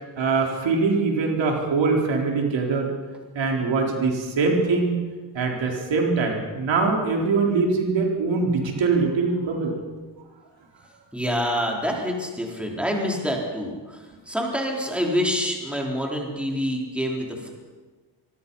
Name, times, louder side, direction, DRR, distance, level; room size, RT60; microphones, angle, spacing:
voice 1, 0.2-2.9 3.3-5.0 5.3-9.7, right 4 dB, 90° right, 1 dB, 4.3 m, -23 dB
voice 2, 11.1-14.0 14.3-17.5, equal, 5° right, -1 dB, 4.2 m, -26 dB
25.5 x 23.0 x 5.7 m, 1.4 s
wide cardioid pair, 135°, 44 cm